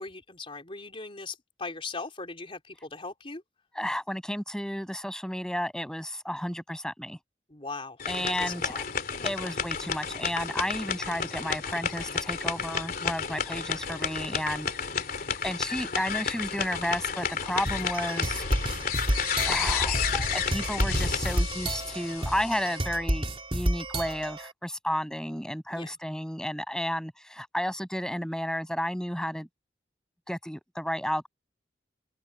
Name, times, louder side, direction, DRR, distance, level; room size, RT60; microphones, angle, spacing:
voice 1, 0.0-3.4 7.5-8.8 9.2-9.3 25.7-25.9, left 3 dB, 30° left, 3.9 m, -39 dB
voice 2, 3.7-7.2 8.0-8.7 9.2-14.7 15.4-18.5 19.4-23.2 23.5-29.5 30.3-31.3, equal, 5° left, 6.5 m, -32 dB
sound 1, 8.0-22.8, left 6 dB, 55° left, 3.1 m, -31 dB
sound 2, 17.7-24.5, right 1 dB, 30° right, 3.1 m, -31 dB
open air
head